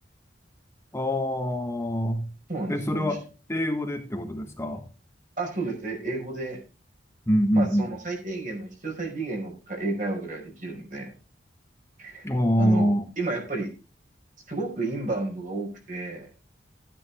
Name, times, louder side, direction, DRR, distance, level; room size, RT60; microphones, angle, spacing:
voice 1, 0.9-2.2 2.7-3.2 3.5-4.8 7.3-7.9 12.2-13.1, equal, 15° left, 5 dB, 1.3 m, -25 dB
voice 2, 2.5-3.2 5.4-6.6 7.5-11.1 12.0-13.7 14.5-16.3, right 2 dB, 45° right, 1 dB, 5.0 m, -32 dB
13.5 x 9.8 x 3.5 m, 0.32 s
head